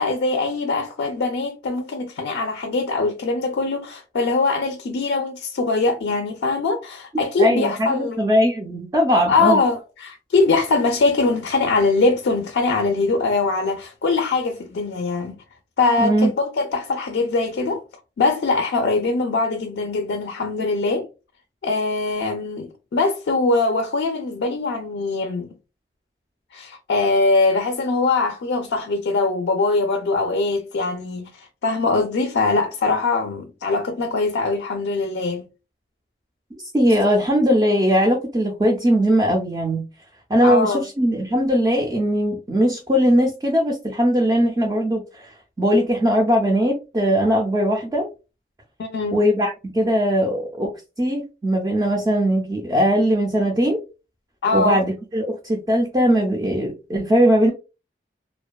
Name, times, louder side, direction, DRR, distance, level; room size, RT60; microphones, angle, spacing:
voice 1, 0.0-8.2 9.3-15.4 15.8-17.8 18.2-21.1 21.6-25.5 26.5-35.5 40.4-40.9 48.8-49.2 54.4-54.8, left 3 dB, 85° left, 0.4 m, -22 dB
voice 2, 7.4-9.6 16.0-16.3 36.7-39.8 40.3-48.1 49.1-53.8 54.5-57.5, equal, 20° right, 0.3 m, -20 dB
2.5 x 2.2 x 2.2 m
head